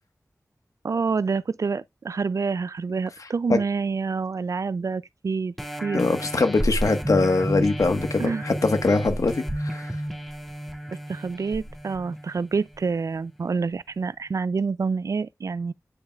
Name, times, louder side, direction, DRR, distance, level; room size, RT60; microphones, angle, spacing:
voice 1, 0.8-5.5 5.8-6.0 8.2-8.4 11.1-15.7, right 4 dB, 70° right, 0.3 m, -27 dB
sound 1, 5.6-12.8 13.3-13.4, equal, 5° left, 1.8 m, -31 dB
voice 2, 5.9-10.0, left 3 dB, 75° left, 1.3 m, -22 dB
9.7 x 5.6 x 2.3 m
wide cardioid pair, 55°, 6 cm